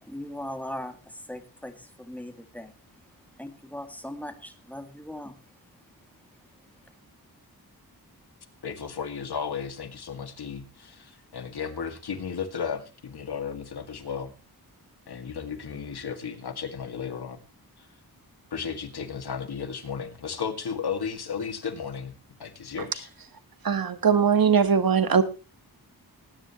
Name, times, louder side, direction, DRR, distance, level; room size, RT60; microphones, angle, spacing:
voice 1, 0.0-2.7 3.4-5.4, left 1 dB, 5° left, 7 dB, 2.1 m, -39 dB
voice 2, 8.6-14.3 15.1-17.4 17.8-17.9 18.5-22.1 22.4-23.1, left 6 dB, 80° left, 7 dB, 2.1 m, -34 dB
voice 3, 23.6-25.2, right 6 dB, 65° right, 12 dB, 1.5 m, -20 dB
19.5 x 10.0 x 3.0 m, 0.32 s
wide cardioid pair, 90°, 38 cm